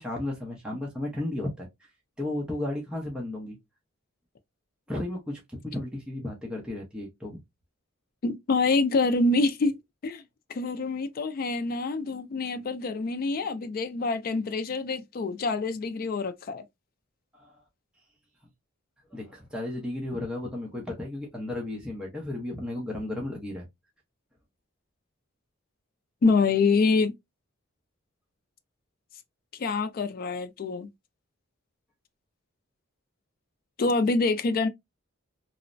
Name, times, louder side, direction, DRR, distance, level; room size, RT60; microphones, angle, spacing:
voice 1, 0.0-1.7 2.2-3.6 4.9-7.4 17.3-17.5 19.1-23.7, left 1 dB, 5° right, 0.6 m, -34 dB
voice 2, 8.2-10.2 10.5-16.6 26.2-27.1 29.5-30.9 33.8-34.7, left 3 dB, 45° left, 0.3 m, -26 dB
3.0 x 2.0 x 2.4 m
head